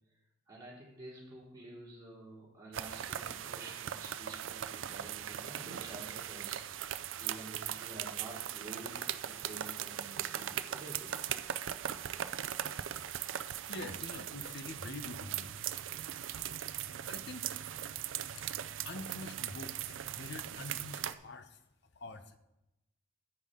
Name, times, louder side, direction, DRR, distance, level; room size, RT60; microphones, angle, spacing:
voice 1, 0.5-6.6 7.2-11.2 13.0-13.2, right 2 dB, 20° right, -6 dB, 3.2 m, -50 dB
sound 1, 2.7-21.1, right 10 dB, 65° right, 0.4 m, -39 dB
voice 2, 13.7-15.5 17.0-17.5 18.4-18.5 18.8-21.6 21.9-22.4, left 2 dB, 55° left, 10 dB, 0.7 m, -45 dB
9.5 x 8.7 x 3.7 m, 0.92 s
head